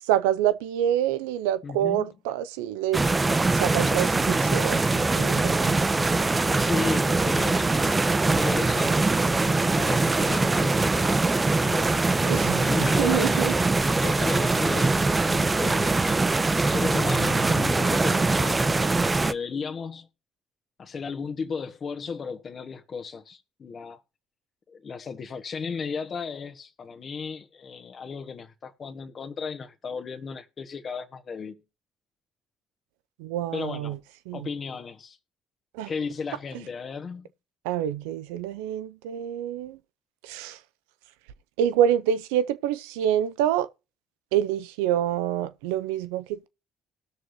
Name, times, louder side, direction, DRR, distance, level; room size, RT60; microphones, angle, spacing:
voice 1, 0.0-3.0 3.6-5.8 12.3-12.6 13.0-13.5 33.2-34.0 34.3-34.4 35.7-35.9 37.6-39.8 40.2-40.6 41.6-43.7 44.3-46.5, right 11 dB, 80° right, 0.6 m, -26 dB
voice 2, 1.6-2.1 6.6-7.8 8.2-12.1 12.6-13.5 13.9-16.2 16.5-20.1 20.8-24.0 24.7-31.6 33.5-34.0 34.3-35.2 35.9-37.3, left 5 dB, 45° left, 1.5 m, -35 dB
sound 1, 2.9-19.3, right 3 dB, 25° right, 0.8 m, -23 dB
19.0 x 6.4 x 2.8 m
hypercardioid pair, 55°, 0 cm